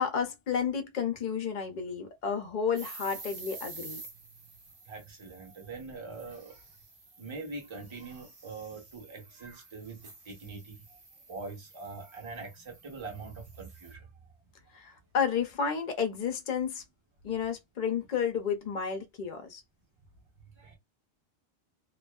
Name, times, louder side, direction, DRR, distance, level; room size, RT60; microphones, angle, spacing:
voice 1, 0.0-4.0 14.7-16.8 17.2-19.6, left 7 dB, 50° left, 0.7 m, -31 dB
sound 1, 2.8-13.9, right 3 dB, 55° right, 1.1 m, -50 dB
voice 2, 4.9-6.6 7.2-11.0 11.3-14.1 20.6-20.8, right 3 dB, 30° right, 0.8 m, -43 dB
2.5 x 2.3 x 2.2 m
omnidirectional pair, 1.2 m